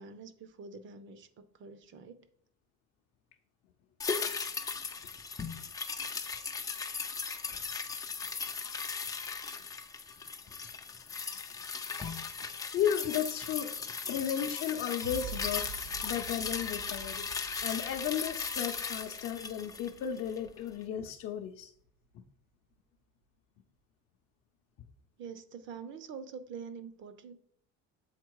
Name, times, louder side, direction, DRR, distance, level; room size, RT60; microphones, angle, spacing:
voice 1, 0.0-2.3 25.2-27.3, right 6 dB, 40° right, 0.6 m, -46 dB
sound 1, 4.0-20.5 20.8-20.9, left 5 dB, 15° left, 0.3 m, -37 dB
voice 2, 12.7-15.7 16.0-17.3 17.6-21.7, left 9 dB, 50° left, 0.6 m, -34 dB
sound 2, 15.0-21.5, right 4 dB, 75° right, 2.3 m, -48 dB
7.3 x 4.1 x 4.6 m
cardioid pair, 175°, 30 cm